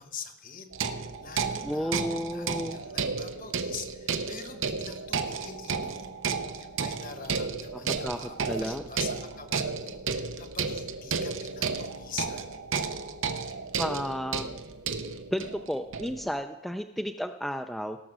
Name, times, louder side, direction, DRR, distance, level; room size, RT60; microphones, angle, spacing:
voice 1, 0.0-6.2 6.6-12.6, left 6 dB, 45° left, 7 dB, 1.1 m, -44 dB
sound 1, 0.7-16.3, right 5 dB, 80° right, 0.8 m, -33 dB
voice 2, 1.6-2.8 7.9-8.2 8.5-8.8 13.8-14.5 15.3-18.0, equal, ahead, 5 dB, 0.3 m, -32 dB
17.5 x 6.4 x 6.1 m, 0.99 s
head